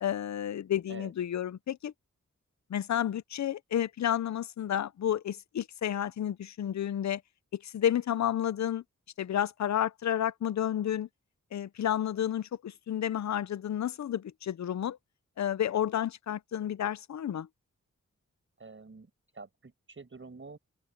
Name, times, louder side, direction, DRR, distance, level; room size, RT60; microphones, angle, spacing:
voice 1, 0.0-1.9 2.7-7.2 7.5-8.8 9.2-11.1 11.5-15.0 15.4-17.5, left 10 dB, 70° left, 0.5 m, -31 dB
voice 2, 18.6-20.6, right 4 dB, 40° right, 5.8 m, -48 dB
open air
wide cardioid pair, 140°, 30 cm